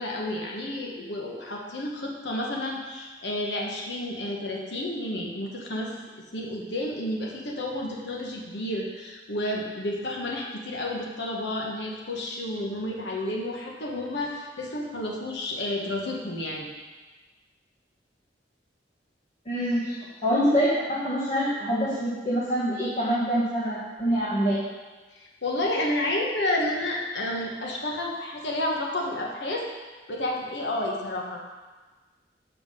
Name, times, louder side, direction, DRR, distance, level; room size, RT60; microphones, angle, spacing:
voice 1, 0.0-5.9 6.3-16.7 25.1-29.7 30.1-31.4, left 1 dB, 80° left, -1 dB, 1.2 m, -31 dB
voice 2, 19.4-20.0 20.2-24.6, equal, 40° left, -8 dB, 1.3 m, -25 dB
7.1 x 5.7 x 5.5 m, 1.3 s
head